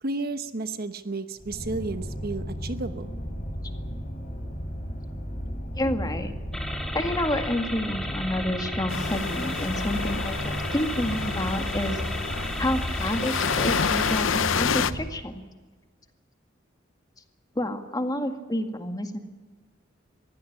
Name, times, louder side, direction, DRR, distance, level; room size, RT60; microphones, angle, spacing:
voice 1, 0.0-3.1, right 3 dB, 50° right, 10 dB, 1.0 m, -32 dB
sound 1, 1.4-15.1, equal, 40° left, 4.1 m, -34 dB
voice 2, 5.8-6.3 6.9-12.0 12.6-15.4 17.6-19.2, left 1 dB, 20° left, 6 dB, 2.0 m, -29 dB
sound 2, 6.5-14.2, left 1 dB, ahead, 2.8 m, -35 dB
sound 3, 8.9-14.9, left 6 dB, 75° left, 0.8 m, -29 dB
23.0 x 15.5 x 8.7 m, 1.4 s
head